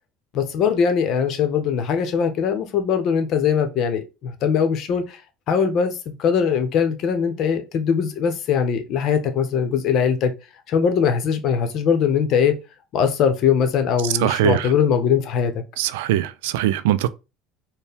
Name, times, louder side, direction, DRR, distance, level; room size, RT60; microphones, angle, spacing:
voice 1, 0.3-5.2 5.5-10.3 10.7-12.6 12.9-15.6, left 7 dB, 55° left, 0.8 m, -21 dB
voice 2, 14.2-14.7 15.8-17.1, right 13 dB, 90° right, 0.3 m, -21 dB
4.3 x 2.2 x 3.5 m
supercardioid pair, 105°, 0 cm